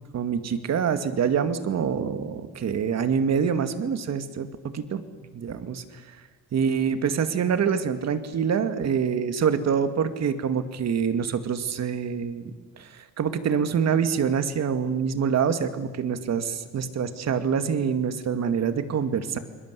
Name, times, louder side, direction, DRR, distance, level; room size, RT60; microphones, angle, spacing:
voice 1, 0.1-5.0 5.3-5.8 6.5-19.4, right 7 dB, 60° right, 9 dB, 2.2 m, -26 dB
28.5 x 22.0 x 8.4 m, 1.3 s
cardioid pair, 90°, 30 cm